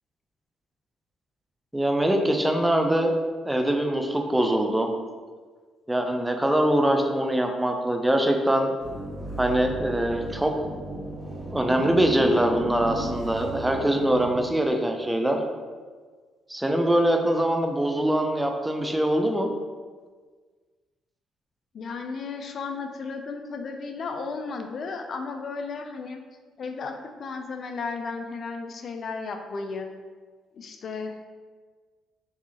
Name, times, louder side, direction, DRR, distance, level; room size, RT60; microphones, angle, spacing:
voice 1, 1.7-3.1 3.4-4.9 5.9-8.7 9.4-10.8 11.5-15.4 16.5-19.5, right 1 dB, 10° right, 3 dB, 0.5 m, -23 dB
sound 1, 8.8-14.4, right 2 dB, 35° right, 1.3 m, -35 dB
voice 2, 21.7-26.2 26.6-29.9 30.5-31.3, left 4 dB, 55° left, 5 dB, 0.4 m, -34 dB
4.8 x 2.7 x 2.8 m, 1.5 s
cardioid pair, 75°, 0 cm